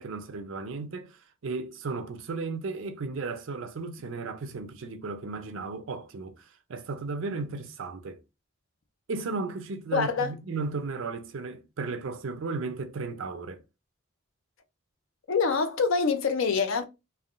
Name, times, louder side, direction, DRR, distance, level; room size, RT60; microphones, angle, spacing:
voice 1, 0.0-8.2 9.1-13.6, right 3 dB, 70° right, 0.5 m, -35 dB
voice 2, 9.9-10.3 15.3-16.8, left 5 dB, 75° left, 0.5 m, -25 dB
3.4 x 2.2 x 2.4 m
head